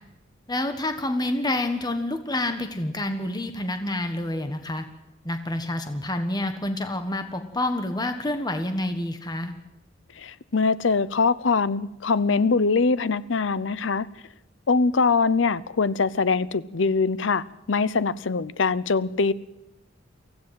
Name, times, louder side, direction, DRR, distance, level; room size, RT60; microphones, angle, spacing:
voice 1, 0.5-4.9 5.2-9.5, left 1 dB, 20° left, 7 dB, 1.4 m, -28 dB
voice 2, 10.2-14.1 14.7-19.3, left 4 dB, 70° left, 18 dB, 0.7 m, -23 dB
24.0 x 16.0 x 7.6 m, 0.95 s
head